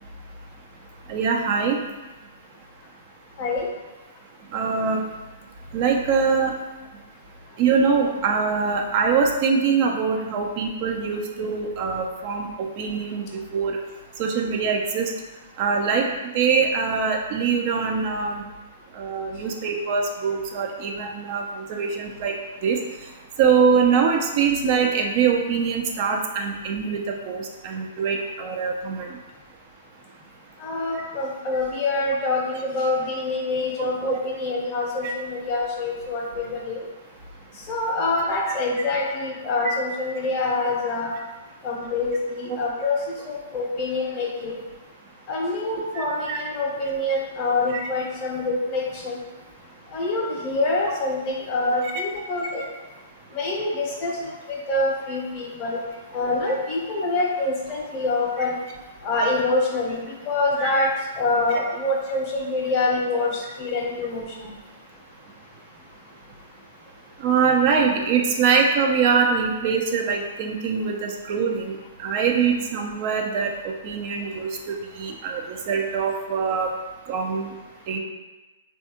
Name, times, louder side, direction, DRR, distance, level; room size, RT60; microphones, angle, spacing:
voice 1, 1.1-1.8 4.5-5.0 5.7-6.5 7.6-13.8 14.2-15.1 15.6-16.1 16.3-18.4 19.0-22.3 22.6-22.8 23.4-29.1 34.1-34.2 35.0-35.1 42.5-42.6 46.0-46.4 47.7-47.9 51.8-51.9 58.4-58.5 60.6-60.7 67.2-76.7 77.1-77.5 77.9-78.0, right 5 dB, 45° right, 2 dB, 0.4 m, -23 dB
voice 2, 30.6-36.8 37.7-41.1 41.6-44.6 45.3-49.2 49.9-52.6 53.3-55.8 56.1-58.5 59.0-60.9 61.2-64.5, left 2 dB, 30° left, -3 dB, 0.6 m, -25 dB
3.3 x 2.3 x 2.8 m, 1.2 s
hypercardioid pair, 130°, 0 cm